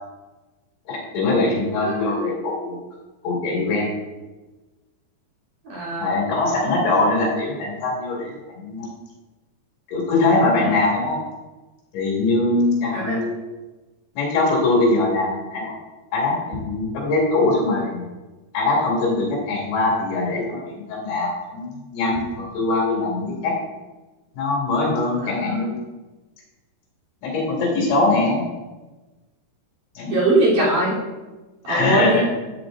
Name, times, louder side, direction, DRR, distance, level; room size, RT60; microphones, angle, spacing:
voice 1, 0.9-2.8 3.2-3.9 6.0-8.9 9.9-11.2 11.9-13.4 14.2-15.7 16.1-18.0 18.5-21.7 21.9-23.6 24.3-25.8 27.2-28.4 30.0-30.1 31.7-32.2, left 2 dB, 75° left, -3 dB, 4.7 m, -22 dB
voice 2, 5.6-6.2 12.9-13.2 25.2-25.6 30.1-31.0 31.6-32.2, right 2 dB, 45° right, -7 dB, 4.5 m, -21 dB
15.5 x 8.7 x 2.6 m, 1.2 s
omnidirectional pair, 5.2 m